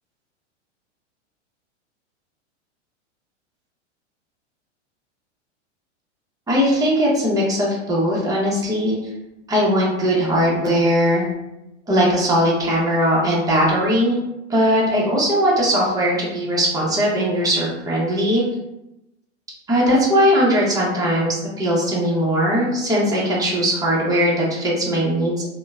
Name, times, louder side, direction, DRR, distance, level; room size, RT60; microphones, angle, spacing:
voice 1, 6.5-9.0 9.5-11.3 11.9-14.2 14.5-18.4 19.7-25.5, equal, 10° right, -5 dB, 0.7 m, -19 dB
2.9 x 2.1 x 2.3 m, 0.92 s
hypercardioid pair, 115°, 36 cm